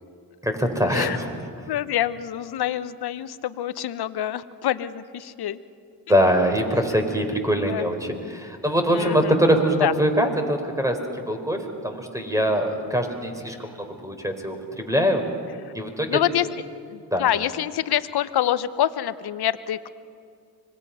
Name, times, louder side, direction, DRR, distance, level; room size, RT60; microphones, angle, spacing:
voice 1, 0.4-1.7 6.1-15.2 15.7-16.2 17.1-17.3, equal, 5° right, 4 dB, 4.0 m, -23 dB
voice 2, 1.7-5.6 7.7-7.8 8.2-8.3 8.9-9.3 9.8-9.9 16.1-16.5 16.9-19.9, left 11 dB, 55° left, 15 dB, 1.0 m, -26 dB
25.0 x 20.0 x 5.7 m, 2.3 s
supercardioid pair, 55°, 47 cm